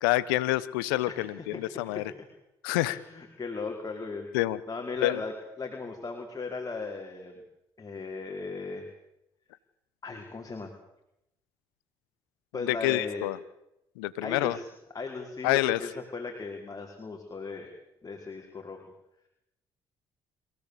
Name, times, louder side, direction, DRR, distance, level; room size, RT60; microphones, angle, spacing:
voice 1, 0.0-2.1 2.6-3.0 4.3-4.6 5.0-5.2 12.6-13.4 14.0-14.6 15.4-15.8, left 17 dB, 90° left, 17 dB, 1.1 m, -27 dB
voice 2, 1.0-2.3 2.8-4.3 4.7-7.4 7.8-8.9 10.0-10.7 12.5-13.3 14.2-14.7 14.9-17.7 18.0-18.8, left 4 dB, 30° left, 1 dB, 4.8 m, -37 dB
27.0 x 16.5 x 8.5 m, 0.85 s
hypercardioid pair, 55°, 11 cm